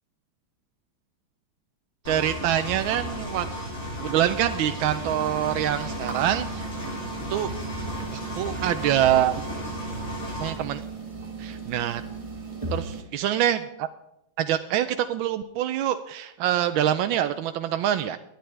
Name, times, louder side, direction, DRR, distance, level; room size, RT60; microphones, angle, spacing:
Engine, 2.0-10.5, equal, 60° left, 5.3 m, -34 dB
voice 1, 2.1-3.5 4.0-6.6 7.3-7.5 8.1-9.4 10.4-10.8 11.4-12.0 12.7-13.9 14.4-18.2, right 11 dB, 90° right, 9 dB, 1.4 m, -25 dB
sound 1, 5.0-13.0, right 4 dB, 20° right, 1.5 m, -37 dB
22.0 x 9.2 x 3.3 m, 0.81 s
omnidirectional pair, 2.1 m